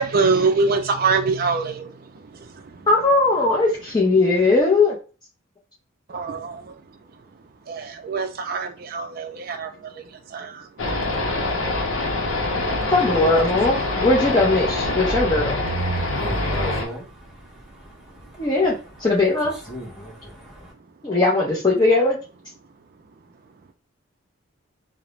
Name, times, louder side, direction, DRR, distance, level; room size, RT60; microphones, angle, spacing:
voice 1, 0.0-1.9 6.1-6.6 7.7-9.7 10.3-10.6 13.1-13.6, right 4 dB, 45° right, 0.4 m, -23 dB
voice 2, 2.9-5.0 12.9-15.6 18.4-19.5 21.0-22.2, left 2 dB, 20° left, 0.5 m, -19 dB
sound 1, 10.8-16.9, left 2 dB, 75° left, 0.7 m, -24 dB
voice 3, 15.9-17.0 19.7-20.7, equal, 5° right, 0.8 m, -35 dB
2.4 x 2.0 x 3.0 m
head